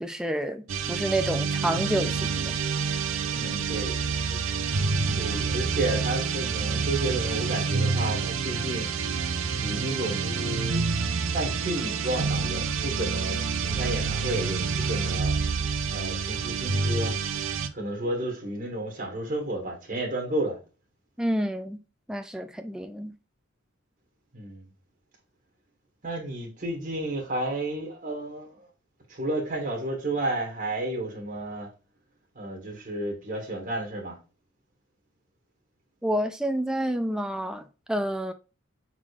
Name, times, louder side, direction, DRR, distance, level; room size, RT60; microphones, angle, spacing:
voice 1, 0.0-2.6 21.2-21.8 22.1-23.1 36.0-37.6 37.9-38.3, right 1 dB, 5° right, 0.3 m, -29 dB
sound 1, 0.7-17.7, right 5 dB, 85° right, 0.6 m, -28 dB
voice 2, 3.3-4.0 4.3-4.4 5.1-8.9 9.5-10.8 11.3-15.4 15.9-17.2 17.7-20.6 24.3-24.7 26.0-28.7 29.1-31.7 32.3-34.2, right 1 dB, 40° right, 1.5 m, -32 dB
5.0 x 3.7 x 2.4 m
head